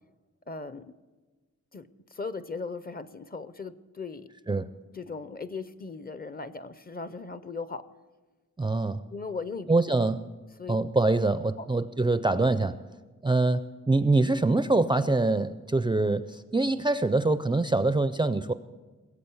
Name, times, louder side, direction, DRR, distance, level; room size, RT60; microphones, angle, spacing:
voice 1, 0.5-0.9 1.7-4.3 4.9-7.8 9.1-9.7 10.6-10.8 11.6-11.7, left 4 dB, 30° left, 14 dB, 0.6 m, -38 dB
voice 2, 8.6-9.0 9.7-10.2 10.7-12.8 13.2-18.5, right 2 dB, 15° right, 12 dB, 0.4 m, -24 dB
21.0 x 8.3 x 7.0 m, 1.3 s
wide cardioid pair, 180°, 30 cm